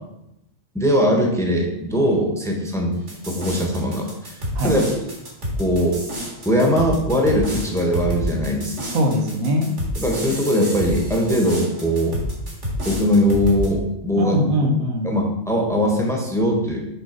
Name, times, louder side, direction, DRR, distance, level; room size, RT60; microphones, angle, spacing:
voice 1, 0.7-3.0 3.2-4.3 4.6-4.9 5.6-6.0 6.4-8.9 10.0-12.2 12.8-14.4 15.0-16.8, equal, ahead, 0 dB, 1.1 m, -20 dB
sound 1, 3.1-13.7, equal, 55° right, 2.4 m, -29 dB
voice 2, 8.8-9.7 14.2-15.1, equal, 80° right, 3 dB, 1.4 m, -21 dB
7.0 x 3.7 x 5.3 m, 0.83 s
omnidirectional pair, 1.4 m